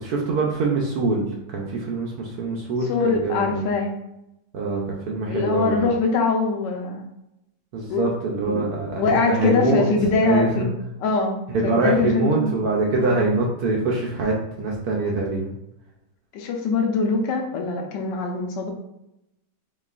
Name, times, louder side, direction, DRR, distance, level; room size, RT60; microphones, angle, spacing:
voice 1, 0.0-3.7 4.5-5.9 7.7-9.9 10.2-10.7 11.5-15.5, right 3 dB, 70° right, -2 dB, 1.0 m, -24 dB
voice 2, 2.9-3.9 5.3-7.1 7.9-8.0 8.5-8.7 9.0-10.7 11.0-11.4 11.6-12.6 13.0-13.3 16.3-18.7, left 4 dB, 80° left, 3 dB, 1.3 m, -23 dB
4.0 x 3.8 x 2.4 m, 0.87 s
omnidirectional pair, 1.9 m